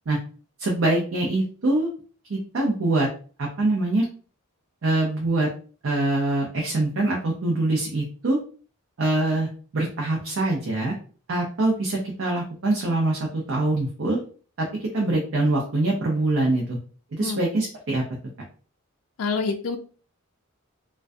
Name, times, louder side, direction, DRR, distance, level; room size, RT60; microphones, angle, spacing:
voice 1, 0.6-1.9 2.3-3.1 3.4-4.1 4.8-5.5 5.8-8.4 9.0-10.9 11.3-14.2 14.6-16.8 17.1-18.0, right 2 dB, 60° right, -1 dB, 0.5 m, -24 dB
voice 2, 19.2-19.8, left 4 dB, 75° left, 5 dB, 0.3 m, -27 dB
2.2 x 2.2 x 2.5 m, 0.40 s
head